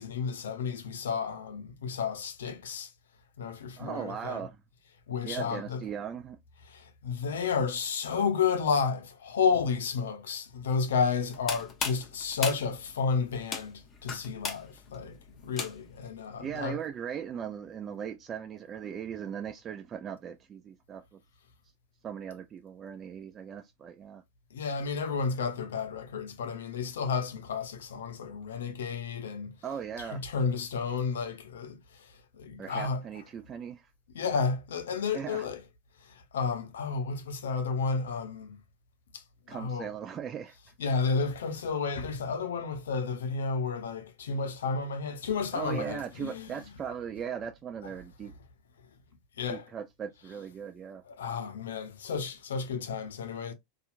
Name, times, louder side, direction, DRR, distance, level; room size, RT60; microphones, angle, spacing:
voice 1, 0.0-2.9 3.4-4.4 5.1-5.8 6.7-15.2 15.4-16.8 24.5-29.6 30.1-32.1 32.4-33.0 34.1-35.6 36.3-38.6 39.1-39.2 39.5-39.9 40.8-46.5 49.4-49.7 51.1-53.5, left 5 dB, 85° left, 0.5 m, -31 dB
voice 2, 3.8-4.6 5.2-6.4 16.4-21.2 22.0-24.2 29.6-30.2 32.6-33.9 35.1-35.5 39.5-40.9 45.5-48.3 49.5-51.0, right 8 dB, 35° right, 0.3 m, -38 dB
sound 1, 11.2-16.1, left 5 dB, 30° left, 0.8 m, -37 dB
2.8 x 2.4 x 2.4 m
hypercardioid pair, 95°, 0 cm